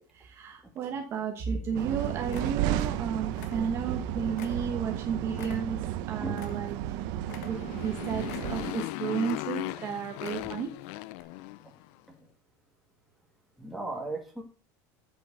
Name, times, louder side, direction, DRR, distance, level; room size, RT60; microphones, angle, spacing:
voice 1, 0.1-5.8 6.1-6.8 7.4-10.7, right 6 dB, 30° right, 3 dB, 1.2 m, -33 dB
sound 1, 0.8-1.4 1.8-1.9 2.3-3.0 3.3-4.0 4.4-6.9 7.3-7.9 8.3-8.8 9.2-9.8 10.1-10.7 11.1-11.2, left 10 dB, 85° left, 1.4 m, -48 dB
sound 2, 1.7-8.7, right 12 dB, 50° right, 0.7 m, -33 dB
Motorcycle, 7.2-11.9, left 20 dB, 55° left, 0.4 m, -37 dB
voice 2, 13.6-14.4, right 2 dB, ahead, -1 dB, 1.9 m, -37 dB
8.0 x 6.3 x 8.1 m, 0.40 s
cardioid pair, 170°, 9 cm